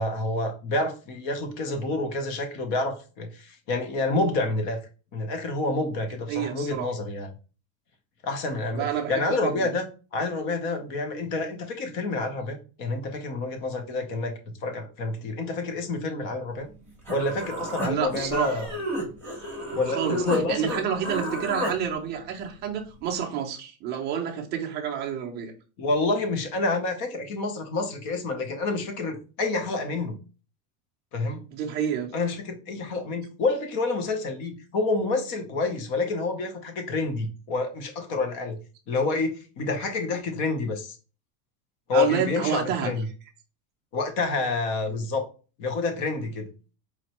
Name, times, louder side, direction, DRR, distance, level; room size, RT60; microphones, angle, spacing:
voice 1, 0.0-4.8 5.1-7.3 8.2-9.8 10.1-16.7 17.1-18.7 19.7-20.7 25.8-30.2 31.1-31.5 32.1-38.6 38.9-41.0 41.9-43.1 43.9-45.3 45.6-46.5, left 3 dB, 45° left, 0.9 m, -28 dB
voice 2, 6.3-6.9 8.7-9.6 17.8-18.6 19.9-25.5 31.5-32.1 41.9-42.9 44.9-45.0, right 8 dB, 20° right, 0.5 m, -29 dB
Human voice, 16.7-16.8 17.1-20.4 20.7-21.7, right 1 dB, 5° left, 1.1 m, -32 dB
4.3 x 3.1 x 2.9 m
supercardioid pair, 165°, 46 cm